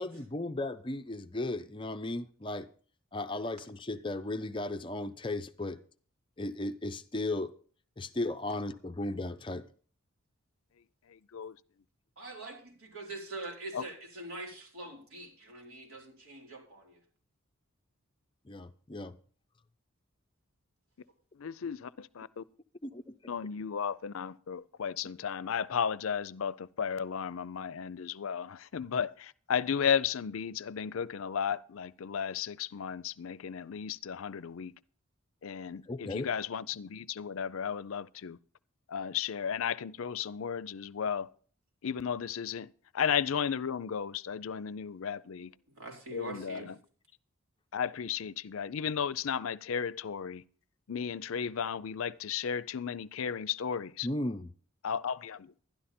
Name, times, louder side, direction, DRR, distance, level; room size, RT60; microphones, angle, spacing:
voice 1, 0.0-2.7 3.1-5.8 6.4-7.5 8.0-9.6 18.5-19.1 22.8-23.1 35.9-36.3 54.0-54.5, left 2 dB, 25° left, 0.5 m, -35 dB
voice 2, 11.1-11.6 13.7-13.9 21.3-22.4 23.3-34.7 35.4-38.4 38.9-41.3 41.8-45.5 46.1-46.7 47.7-50.4 50.9-54.1 54.8-55.5, left 7 dB, 75° left, 0.5 m, -34 dB
voice 3, 12.2-17.0 45.7-46.7, right 2 dB, 80° right, 4.4 m, -44 dB
11.5 x 11.5 x 4.3 m
head